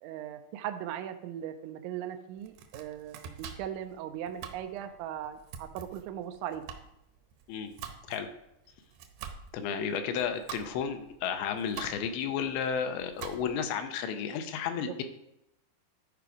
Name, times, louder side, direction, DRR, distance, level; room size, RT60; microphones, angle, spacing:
voice 1, 0.0-6.6, right 10 dB, 90° right, 7 dB, 3.1 m, -39 dB
Domestic sounds home sounds, 2.4-13.7, right 8 dB, 75° right, 2.5 m, -47 dB
voice 2, 9.5-15.0, left 7 dB, 85° left, 7 dB, 2.9 m, -32 dB
12.0 x 5.0 x 4.8 m, 0.84 s
omnidirectional pair, 5.3 m